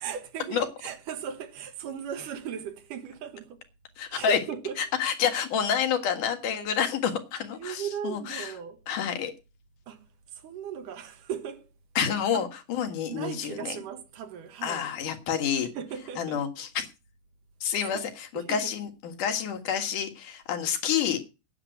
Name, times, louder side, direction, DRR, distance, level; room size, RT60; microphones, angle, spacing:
voice 1, 0.0-3.7 4.1-4.8 7.6-8.8 9.9-10.1 10.3-11.7 12.3-12.5 13.1-14.9 15.7-16.4 17.8-18.1 18.3-18.7, right 8 dB, 80° right, 3.0 m, -37 dB
voice 2, 4.0-4.4 4.8-8.5 8.9-9.3 12.0-13.8 14.6-15.7 16.2-16.9 17.6-21.2, left 8 dB, 75° left, 3.2 m, -28 dB
9.9 x 7.4 x 9.2 m
omnidirectional pair, 3.7 m